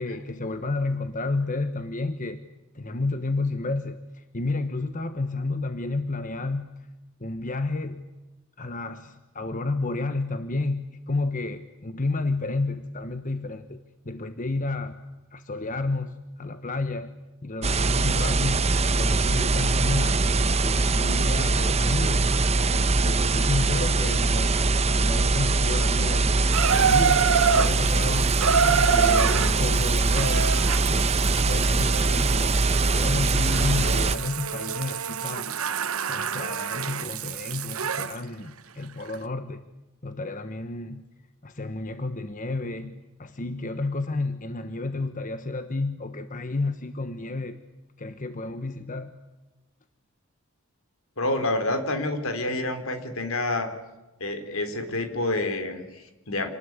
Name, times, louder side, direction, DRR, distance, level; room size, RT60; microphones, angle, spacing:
voice 1, 0.0-2.4 2.7-6.7 7.2-8.0 8.6-17.1 17.4-18.7 19.0-22.3 22.7-24.6 24.9-28.3 28.6-30.5 30.9-35.5 36.1-39.7 40.0-41.1 41.4-47.6 48.0-49.1, left 3 dB, 35° left, 10 dB, 1.2 m, -31 dB
sound 1, 17.6-34.2, right 3 dB, 30° right, 0.9 m, -22 dB
Water tap faucet / Bathtub (filling or washing), 26.5-38.2 39.1-39.2, right 6 dB, 75° right, 1.1 m, -27 dB
voice 2, 51.2-53.7 54.2-56.5, left 2 dB, 70° left, 8 dB, 4.0 m, -28 dB
28.0 x 20.0 x 9.7 m, 1.1 s
head